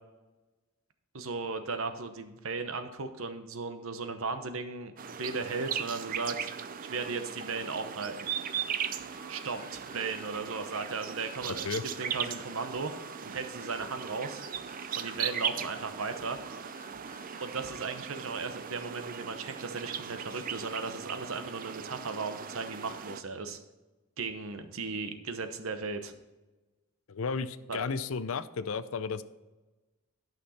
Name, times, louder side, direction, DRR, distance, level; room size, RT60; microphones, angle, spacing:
voice 1, 1.1-4.9 5.2-6.5 6.9-8.3 9.3-12.9 13.2-14.4 15.0-16.4 17.4-23.6 24.2-26.1 27.7-27.9, right 4 dB, 70° right, 8 dB, 0.9 m, -36 dB
sound 1, 5.0-23.2, right 8 dB, 40° right, 0.4 m, -38 dB
sound 2, 8.5-18.1, left 5 dB, 20° left, 2.1 m, -56 dB
voice 2, 27.1-29.2, left 5 dB, 70° left, 14 dB, 0.5 m, -33 dB
11.5 x 6.1 x 4.2 m, 1.2 s
head